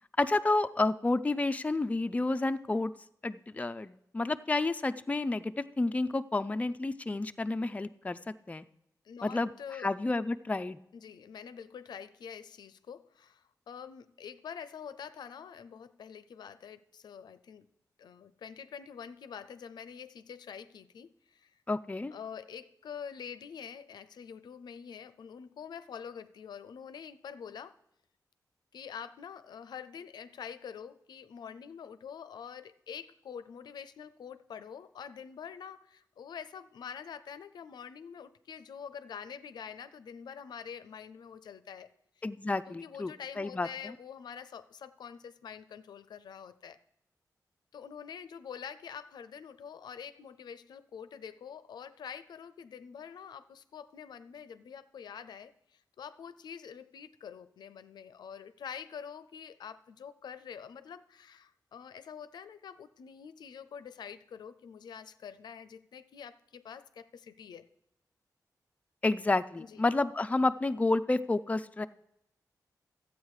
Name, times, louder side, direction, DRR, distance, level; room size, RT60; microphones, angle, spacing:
voice 1, 0.2-2.9 3.2-8.6 9.2-9.5 9.8-10.8 21.7-22.1 42.2-43.1 43.4-43.7 69.0-71.9, left 2 dB, 20° left, 10 dB, 0.4 m, -30 dB
voice 2, 9.0-9.9 10.9-17.7 18.0-21.6 22.1-27.7 28.7-41.9 42.2-42.3 42.7-46.8 47.7-67.6 69.6-69.8, left 7 dB, 90° left, 13 dB, 0.5 m, -46 dB
12.5 x 8.1 x 4.8 m, 0.79 s
cardioid pair, 75°, 7 cm